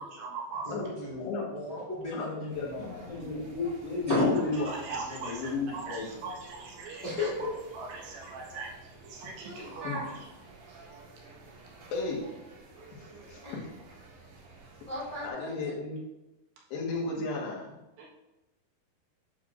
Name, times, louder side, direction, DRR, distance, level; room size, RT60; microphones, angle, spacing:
voice 1, 0.1-0.8 4.2-4.3 4.7-7.3 7.7-8.8 9.0-10.3 10.7-10.8 18.0-18.1, right 4 dB, 85° right, -3 dB, 3.5 m, -40 dB
voice 2, 0.6-3.3 7.0-7.5, left 2 dB, 25° right, -8 dB, 1.1 m, -37 dB
voice 3, 2.1-4.7 5.1-6.1 9.8-10.0 11.9-12.2 13.3-13.4 15.2-16.0 16.7-17.7, left 3 dB, 80° left, -4 dB, 3.7 m, -33 dB
sound 1, 2.5-15.3, right 3 dB, 55° right, 3.0 m, -52 dB
voice 4, 9.4-10.1 13.4-13.6 14.9-15.5, left 1 dB, 65° left, -8 dB, 0.3 m, -31 dB
9.1 x 6.7 x 2.5 m, 0.98 s
omnidirectional pair, 4.7 m